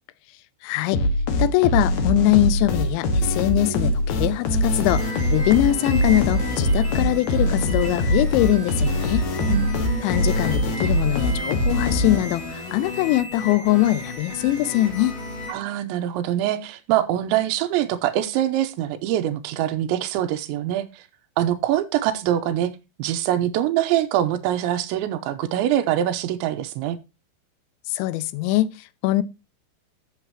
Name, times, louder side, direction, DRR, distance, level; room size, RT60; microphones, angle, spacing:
voice 1, 0.6-1.0 1.4-9.3 10.0-15.1 27.9-29.2, left 15 dB, 85° left, 2.9 m, -22 dB
sound 1, 0.9-12.5, left 1 dB, 65° left, 1.8 m, -23 dB
sound 2, 4.8-15.5, left 2 dB, 30° left, 3.6 m, -34 dB
voice 2, 9.5-10.1 15.5-21.1 21.4-27.0, right 12 dB, 85° right, 3.0 m, -24 dB
12.5 x 7.4 x 2.8 m
omnidirectional pair, 5.3 m